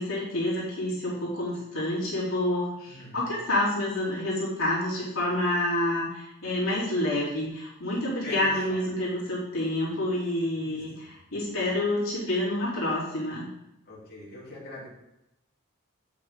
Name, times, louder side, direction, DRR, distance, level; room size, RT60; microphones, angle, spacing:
voice 1, 0.0-13.5, left 1 dB, 80° left, -8 dB, 3.4 m, -28 dB
voice 2, 2.9-3.3 8.2-8.8 10.6-11.1 13.9-14.9, left 1 dB, 45° left, -8 dB, 3.0 m, -42 dB
8.3 x 6.8 x 3.7 m, 0.89 s
head